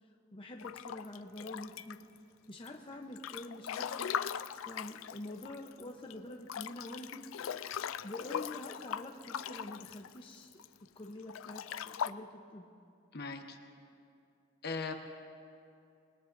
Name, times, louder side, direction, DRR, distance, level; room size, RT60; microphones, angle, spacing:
voice 1, 0.3-2.0 2.5-4.2 4.7-7.2 8.0-10.5 11.0-12.7, left 1 dB, 25° left, 1 dB, 0.8 m, -46 dB
Breathing / Bathtub (filling or washing) / Splash splatter, 0.6-2.2 2.7-5.8 6.1-6.2 6.5-10.7 11.2-12.1, left 8 dB, 85° left, 0.4 m, -40 dB
voice 2, 13.1-13.6 14.6-14.9, left 4 dB, 55° left, 4 dB, 1.2 m, -38 dB
27.0 x 20.0 x 2.6 m, 2.5 s
head